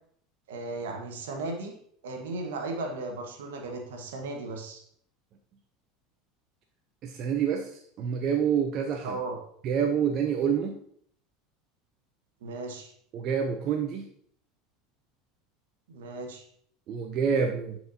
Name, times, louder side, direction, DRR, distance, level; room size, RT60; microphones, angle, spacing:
voice 1, 0.5-1.7 2.0-4.8 9.0-9.4 12.4-12.9 15.9-16.5, right 2 dB, 75° right, 3 dB, 1.3 m, -36 dB
voice 2, 7.0-7.7 8.0-9.2 9.6-10.7 13.1-14.1 16.9-17.8, right 7 dB, 50° right, 4 dB, 0.7 m, -27 dB
10.0 x 4.6 x 2.7 m, 0.63 s
hypercardioid pair, 80°, 0 cm